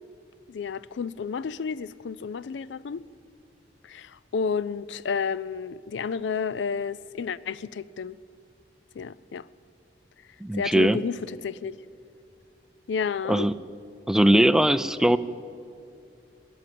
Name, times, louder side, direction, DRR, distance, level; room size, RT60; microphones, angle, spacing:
voice 1, 0.5-3.0 3.8-8.2 8.9-9.5 10.5-11.8 12.9-13.5, left 6 dB, 85° left, 0.4 m, -31 dB
voice 2, 10.4-11.0 13.3-13.5 14.1-15.2, right 1 dB, 5° right, 0.3 m, -20 dB
17.5 x 11.0 x 7.6 m
head